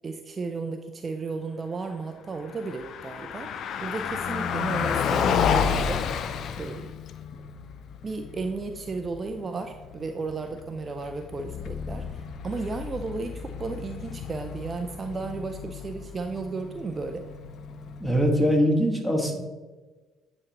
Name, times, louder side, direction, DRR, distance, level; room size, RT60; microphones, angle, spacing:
voice 1, 0.0-3.5 3.8-6.0 6.6-6.9 8.0-17.2, right 4 dB, 35° right, 6 dB, 0.4 m, -34 dB
Car passing by, 2.4-18.5, left 7 dB, 55° left, 0.4 m, -32 dB
voice 2, 18.0-19.4, equal, 5° left, 1 dB, 1.5 m, -22 dB
8.7 x 3.9 x 2.9 m, 1.3 s
hypercardioid pair, 50°, 0 cm